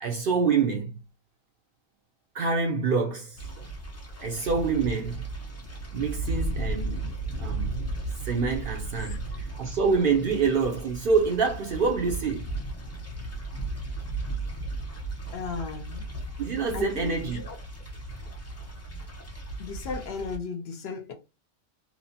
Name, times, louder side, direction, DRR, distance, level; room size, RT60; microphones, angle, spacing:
voice 1, 0.0-1.0 2.3-3.4 4.2-5.2 5.9-7.1 7.4-7.8 8.2-12.5 16.4-17.4, right 5 dB, 60° right, 0.6 m, -26 dB
sound 1, 3.4-20.4, right 2 dB, 25° left, 0.3 m, -35 dB
voice 2, 15.3-16.1 16.7-17.6 19.6-21.1, left 5 dB, 65° left, 0.7 m, -35 dB
2.9 x 2.0 x 2.6 m
omnidirectional pair, 1.2 m